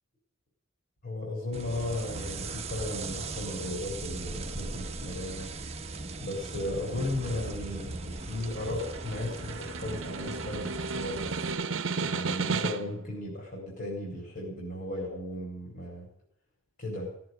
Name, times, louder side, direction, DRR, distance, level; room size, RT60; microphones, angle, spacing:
voice 1, 1.0-5.5 6.2-11.3 12.0-16.1 16.8-17.1, left 1 dB, 50° left, -2 dB, 4.6 m, -35 dB
sound 1, 1.5-11.5, right 3 dB, 30° right, 1.0 m, -39 dB
Snare drum, 8.2-13.1, right 4 dB, 65° right, 0.9 m, -34 dB
17.0 x 7.9 x 7.9 m, 0.64 s
head